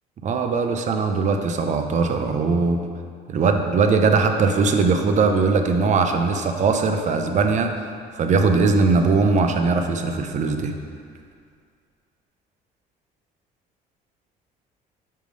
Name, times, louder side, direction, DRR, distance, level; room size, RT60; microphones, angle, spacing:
voice 1, 0.2-2.8 3.3-10.8, right 4 dB, 45° right, 5 dB, 0.6 m, -20 dB
5.7 x 5.0 x 5.2 m, 2.2 s
cardioid pair, 110°, 17 cm